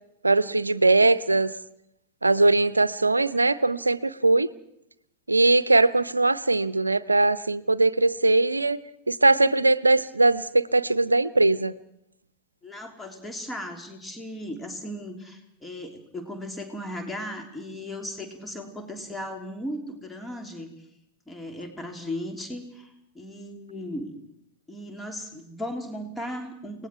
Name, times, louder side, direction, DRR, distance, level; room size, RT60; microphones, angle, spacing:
voice 1, 0.2-1.5 2.2-4.5 5.3-8.8 9.1-11.7, right 2 dB, 80° right, 18 dB, 0.7 m, -21 dB
voice 2, 12.6-20.7 21.3-24.1 24.7-26.9, left 1 dB, 10° left, 4 dB, 3.3 m, -36 dB
30.0 x 19.5 x 4.7 m, 0.79 s
figure-of-eight pair, 90°, 0 cm